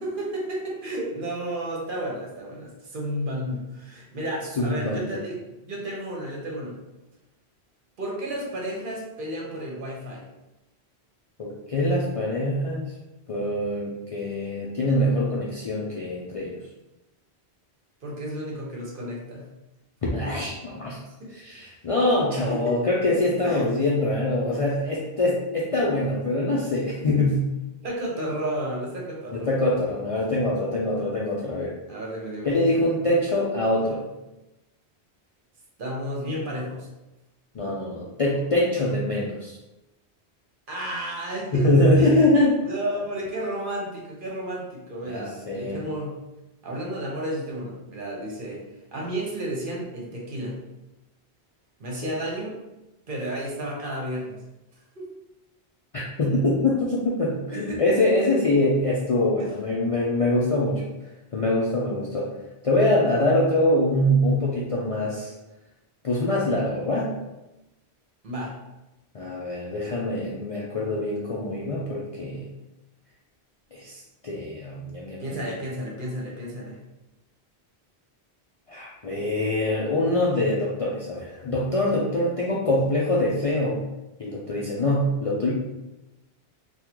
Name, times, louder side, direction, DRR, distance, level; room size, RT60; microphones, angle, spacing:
voice 1, 0.0-6.8 8.0-10.2 18.0-19.5 21.2-21.7 22.5-22.8 23.4-23.7 27.8-29.6 31.9-33.0 35.8-36.9 40.7-41.6 42.0-42.3 42.7-46.1 46.6-48.6 48.9-50.6 51.8-52.6 53.1-54.4 55.0-55.1 57.5-58.1 59.4-59.5 68.2-68.5 75.2-76.8, right 1 dB, 55° right, -3 dB, 0.9 m, -32 dB
voice 2, 4.6-5.2 11.4-12.9 13.3-16.6 20.0-21.0 21.3-27.4 29.3-31.7 32.4-34.0 37.5-39.6 41.5-42.6 45.1-45.8 55.9-60.8 61.3-62.3 62.6-65.3 66.0-67.1 69.1-72.5 73.7-75.6 78.7-83.8 84.2-85.5, left 1 dB, 50° left, -5 dB, 0.4 m, -24 dB
3.6 x 2.3 x 2.9 m, 0.99 s
omnidirectional pair, 1.1 m